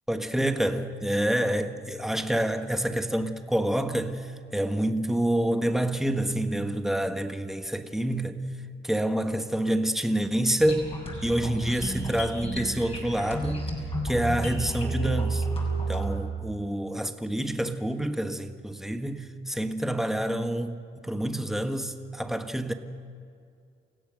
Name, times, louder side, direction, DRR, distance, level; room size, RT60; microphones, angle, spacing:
voice 1, 0.1-8.4 8.8-10.9 11.2-13.7 14.0-15.5 15.9-22.7, right 1 dB, ahead, 1.5 m, -27 dB
sound 1, 10.6-16.2, right 2 dB, 30° left, 6.4 m, -31 dB
29.0 x 16.5 x 6.5 m
cardioid pair, 90°, 20 cm